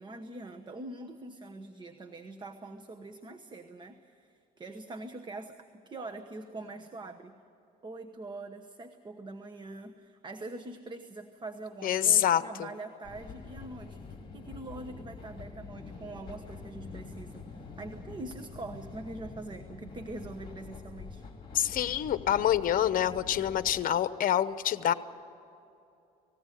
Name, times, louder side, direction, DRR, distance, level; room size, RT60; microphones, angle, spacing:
voice 1, 0.0-7.4 7.8-14.0 14.3-21.2, right 2 dB, 25° right, 8 dB, 1.1 m, -43 dB
voice 2, 11.8-12.7 21.5-24.9, left 10 dB, 55° left, 13 dB, 0.9 m, -26 dB
sound 1, 13.0-23.8, left 4 dB, 30° left, 3.3 m, -46 dB
19.5 x 16.0 x 9.2 m, 2.8 s
cardioid pair, 110°, 17 cm